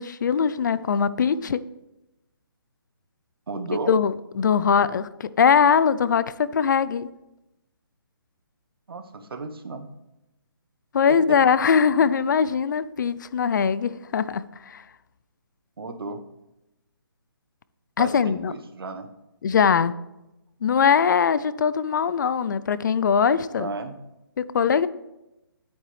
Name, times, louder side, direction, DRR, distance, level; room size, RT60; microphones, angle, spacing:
voice 1, 0.0-1.6 3.9-7.1 10.9-14.8 18.0-18.5 19.4-19.9 20.6-23.7 24.4-24.9, left 6 dB, 50° left, 16 dB, 0.5 m, -21 dB
voice 2, 3.5-3.9 8.9-9.9 11.1-11.4 15.8-16.2 18.0-19.1 23.6-24.0, right 3 dB, 70° right, 7 dB, 1.2 m, -34 dB
10.0 x 8.9 x 3.3 m, 0.93 s
hypercardioid pair, 160°, 13 cm